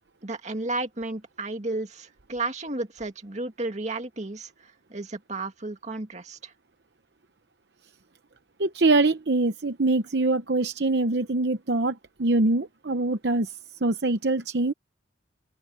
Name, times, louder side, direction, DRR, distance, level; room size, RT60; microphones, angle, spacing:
voice 1, 0.2-6.5, right 2 dB, 40° right, 2.1 m, -33 dB
voice 2, 8.6-13.5 13.8-14.7, right 2 dB, 65° right, 0.8 m, -24 dB
open air
head